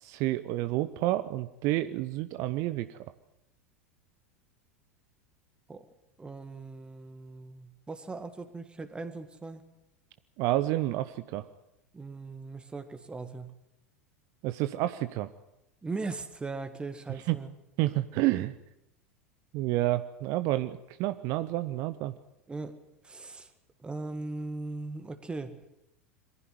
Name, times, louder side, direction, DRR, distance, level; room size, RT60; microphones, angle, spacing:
voice 1, 0.0-3.0 10.4-11.5 14.4-15.3 17.3-17.4 17.8-18.6 19.5-22.1, right 16 dB, 45° right, 13 dB, 0.8 m, -29 dB
voice 2, 6.2-9.6 11.9-13.5 15.8-17.5 22.5-22.8 23.0-23.5 23.8-25.6, right 3 dB, 15° right, 9 dB, 2.0 m, -39 dB
23.0 x 15.5 x 9.5 m, 0.86 s
figure-of-eight pair, 85°, 7 cm